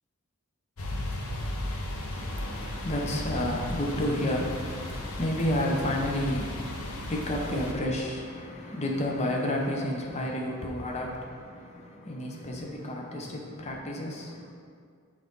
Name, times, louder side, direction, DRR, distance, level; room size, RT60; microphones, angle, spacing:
sound 1, 0.8-7.7, left 1 dB, 75° left, 0.7 m, -35 dB
voice 1, 2.1-14.5, left 1 dB, 30° left, 0 dB, 0.6 m, -31 dB
5.6 x 4.9 x 3.9 m, 2.2 s
head